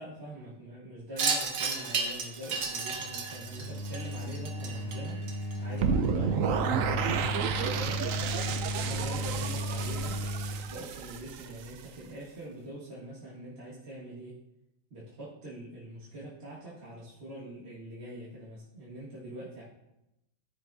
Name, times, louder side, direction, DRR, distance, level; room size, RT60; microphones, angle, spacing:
voice 1, 0.0-5.2 5.5-7.1 7.7-7.9 8.7-10.2 10.7-14.4 14.9-19.6, right 1 dB, 35° right, -7 dB, 2.0 m, -44 dB
Wind chime, 1.2-5.8, right 5 dB, 80° right, 1.7 m, -33 dB
sound 1, 2.9-10.6, equal, 45° left, 1.6 m, -35 dB
sound 2, 5.8-11.8, right 7 dB, 65° right, 0.8 m, -31 dB
13.5 x 6.0 x 2.8 m, 0.89 s
omnidirectional pair, 1.9 m